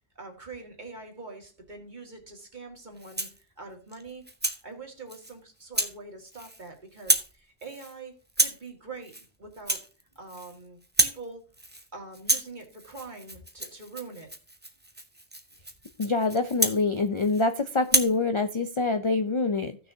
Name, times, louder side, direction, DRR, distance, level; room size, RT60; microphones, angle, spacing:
voice 1, 0.2-3.3 3.6-4.3 4.6-9.1 9.4-9.8 10.1-11.4 11.9-14.3, right 3 dB, 45° right, 2 dB, 2.1 m, -44 dB
Rattle (instrument), 3.0-3.4 3.9-4.6 5.1-5.3 5.7-6.0 6.3-6.7 6.9-7.3 7.6-7.9 8.3-8.7 9.0-9.3 9.5-10.6 10.8-11.2 11.5-11.9 12.1-17.5 17.8-18.2, right 1 dB, 10° right, 0.7 m, -29 dB
voice 2, 16.0-19.8, left 3 dB, 40° left, 8 dB, 0.5 m, -25 dB
16.0 x 6.2 x 2.7 m, 0.35 s
omnidirectional pair, 1.1 m